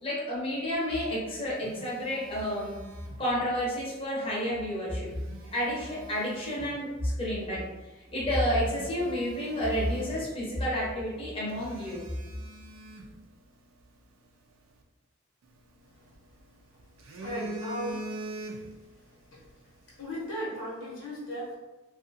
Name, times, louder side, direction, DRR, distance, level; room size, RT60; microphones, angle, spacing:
voice 1, 0.0-2.7 3.2-5.1 5.5-7.6 8.1-12.0, equal, 25° left, -6 dB, 0.6 m, -30 dB
Telephone, 1.1-3.6 4.9-6.8 7.4-7.6 8.1-8.2 8.6-10.6 10.9-11.0 11.5-13.9 15.4-16.4 16.8-18.9 19.2-19.5, right 1 dB, 85° right, 0.4 m, -44 dB
voice 2, 17.2-18.2 19.3-19.4 20.0-21.6, equal, 85° left, -6 dB, 1.0 m, -36 dB
2.4 x 2.3 x 2.6 m, 1.2 s
head